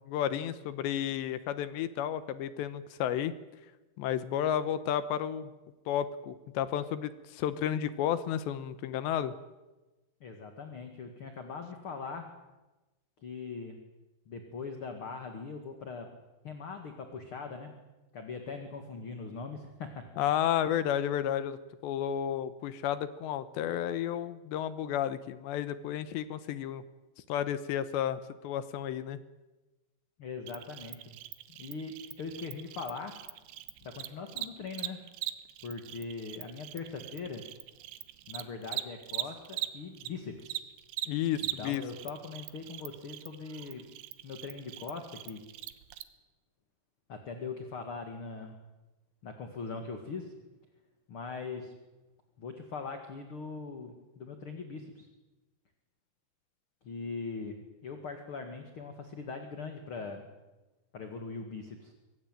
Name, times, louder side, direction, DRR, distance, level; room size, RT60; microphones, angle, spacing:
voice 1, 0.0-3.3 4.0-5.5 5.9-9.3 20.2-21.6 21.8-26.8 27.3-29.2 41.1-41.8, left 10 dB, 75° left, 13 dB, 3.2 m, -32 dB
voice 2, 10.2-12.3 13.2-13.8 14.3-16.2 16.4-17.8 18.1-20.0 30.2-31.2 31.5-33.1 33.8-35.0 35.6-37.5 38.3-40.6 41.4-43.8 44.2-45.4 47.1-48.6 49.2-50.3 51.1-51.7 52.4-55.1 56.8-60.3 60.9-61.9, left 4 dB, 45° left, 5 dB, 1.8 m, -41 dB
Cricket, 30.5-40.1 40.4-46.0, right 15 dB, 75° right, 3.2 m, -41 dB
25.0 x 20.0 x 9.1 m, 1.1 s
omnidirectional pair, 5.2 m